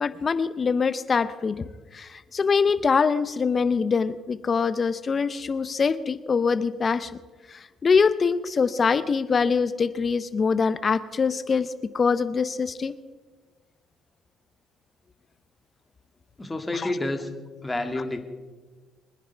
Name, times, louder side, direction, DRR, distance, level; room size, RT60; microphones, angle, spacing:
voice 1, 0.0-1.6 1.9-7.1 7.5-12.9 16.7-16.9, left 5 dB, 40° left, 15 dB, 0.7 m, -24 dB
voice 2, 16.4-17.3 17.6-18.2, left 2 dB, 20° left, 5 dB, 2.0 m, -29 dB
23.5 x 10.0 x 4.6 m, 1.3 s
supercardioid pair, 65°, 0 cm